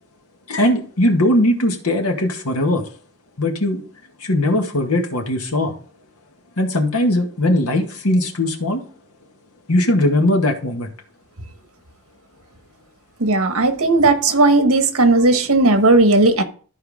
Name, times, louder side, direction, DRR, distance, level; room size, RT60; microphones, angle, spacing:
voice 1, 0.5-2.9 3.4-3.8 4.2-5.7 6.6-8.8 9.7-10.9, left 1 dB, 90° left, 2.0 m, -19 dB
voice 2, 13.2-16.4, right 2 dB, 80° right, 1.4 m, -15 dB
14.0 x 4.7 x 3.7 m
head